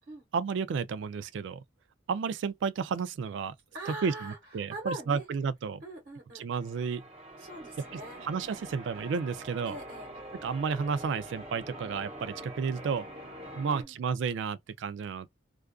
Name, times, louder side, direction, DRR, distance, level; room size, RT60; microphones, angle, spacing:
voice 1, 0.3-1.6 2.1-3.5 3.9-5.8 6.3-7.0 7.9-9.8 10.4-13.1 13.6-15.3, right 5 dB, 65° right, 0.3 m, -32 dB
voice 2, 3.7-4.4 4.7-5.2 5.8-6.4 7.4-8.2 9.7-10.1 13.4-13.9, right 1 dB, 45° right, 1.1 m, -41 dB
Church bell, 6.5-13.8, right 1 dB, 30° right, 0.7 m, -45 dB
2.3 x 2.3 x 2.2 m
head